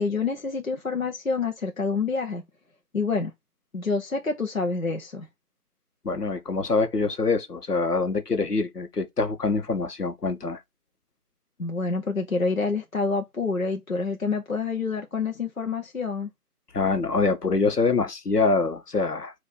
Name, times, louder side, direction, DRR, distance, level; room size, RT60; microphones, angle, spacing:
voice 1, 0.0-2.4 2.9-3.3 3.7-5.3 11.6-16.3, left 4 dB, 60° left, 0.7 m, -27 dB
voice 2, 6.0-10.6 16.7-19.3, left 4 dB, 80° left, 1.0 m, -25 dB
3.6 x 2.6 x 3.9 m
figure-of-eight pair, 180°, 46 cm